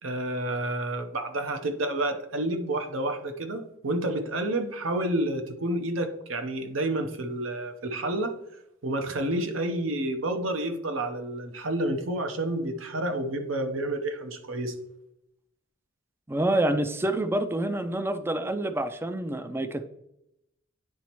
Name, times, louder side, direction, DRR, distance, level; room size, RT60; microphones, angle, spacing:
voice 1, 0.0-8.3 8.8-14.7, right 1 dB, 80° right, 7 dB, 0.8 m, -29 dB
voice 2, 16.3-19.9, right 1 dB, 10° right, 9 dB, 0.3 m, -27 dB
9.5 x 4.1 x 3.0 m, 0.84 s
head